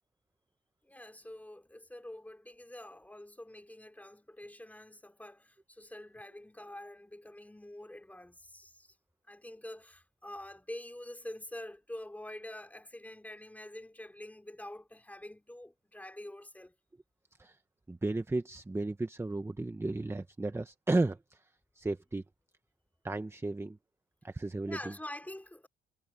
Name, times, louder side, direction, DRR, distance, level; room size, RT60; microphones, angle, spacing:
voice 1, 0.8-8.9 9.3-16.7 24.7-25.7, left 1 dB, 10° left, 4.4 m, -46 dB
voice 2, 17.9-21.5 21.7-22.2 23.0-23.8 24.2-24.9, right 2 dB, 15° right, 1.0 m, -34 dB
cardioid pair, 90°, 20 cm